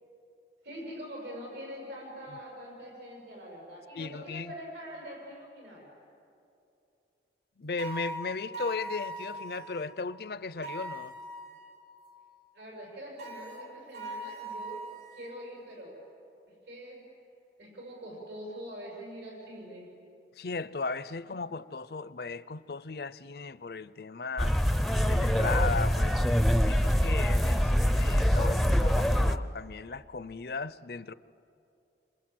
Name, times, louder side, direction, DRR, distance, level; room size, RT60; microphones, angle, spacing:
voice 1, 0.6-5.9 12.5-16.0 16.7-17.0 17.6-19.9, equal, 80° right, 7.1 m, -44 dB
voice 2, 3.9-4.5 7.6-11.1 20.4-24.6 25.1-31.1, left 4 dB, 60° left, 0.6 m, -36 dB
sound 1, 7.8-9.9 10.6-11.9 13.2-15.4, right 1 dB, 65° right, 3.6 m, -40 dB
sound 2, 24.4-29.4, equal, ahead, 0.5 m, -24 dB
29.0 x 26.0 x 7.8 m
head